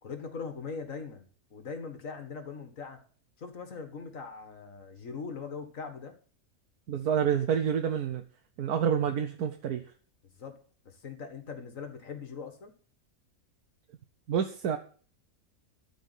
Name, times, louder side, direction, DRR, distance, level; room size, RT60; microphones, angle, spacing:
voice 1, 0.0-3.0 3.4-6.1 10.4-10.6 10.8-12.7, left 5 dB, 60° left, 7 dB, 2.1 m, -41 dB
voice 2, 6.9-8.2 8.6-9.8 14.3-14.8, right 8 dB, 90° right, 5 dB, 1.4 m, -28 dB
13.5 x 5.0 x 8.3 m, 0.43 s
omnidirectional pair, 1.5 m